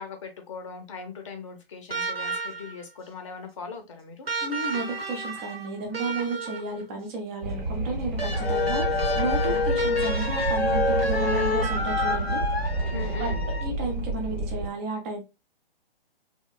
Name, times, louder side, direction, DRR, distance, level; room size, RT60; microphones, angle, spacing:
voice 1, 0.0-4.3 9.4-9.6 12.9-13.4, left 4 dB, 30° left, 5 dB, 0.6 m, -39 dB
sound 1, 1.9-2.8 4.3-6.8 8.2-12.6 14.0-14.1, right 3 dB, 85° right, 1.1 m, -32 dB
voice 2, 4.4-12.4 13.2-13.3 13.6-15.2, right 2 dB, 15° right, 2 dB, 0.4 m, -33 dB
Wind, 7.4-14.7, right 2 dB, 45° right, 0.9 m, -29 dB
sound 2, 8.3-13.7, left 5 dB, 90° left, 0.5 m, -28 dB
3.0 x 2.1 x 2.2 m, 0.26 s
figure-of-eight pair, 130°, 30 cm